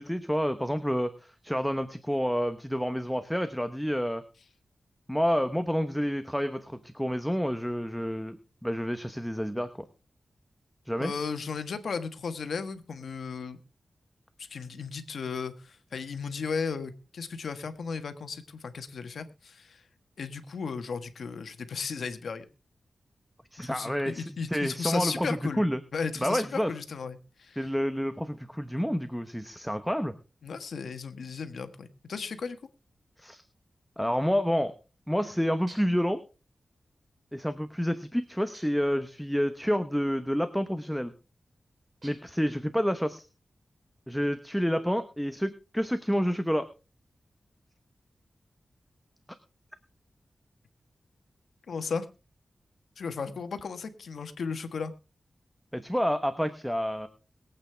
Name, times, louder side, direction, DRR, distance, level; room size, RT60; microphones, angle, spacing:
voice 1, 0.0-4.2 5.1-8.4 8.6-9.7 10.9-11.1 23.5-25.8 26.2-26.7 27.6-30.1 33.2-33.4 34.0-34.7 35.1-36.2 37.3-41.1 42.0-43.2 44.1-46.7 55.7-57.1, equal, ahead, 9 dB, 1.0 m, -29 dB
voice 2, 11.0-13.6 14.4-19.8 20.2-22.4 23.7-25.7 25.9-27.6 30.4-32.6 51.7-52.1 53.0-54.9, left 5 dB, 85° left, 9 dB, 1.4 m, -35 dB
sound 1, 35.7-36.1 38.5-39.0 42.0-42.5, right 2 dB, 50° right, 6.8 m, -52 dB
22.5 x 8.6 x 3.3 m, 0.31 s
wide cardioid pair, 90°, 0 cm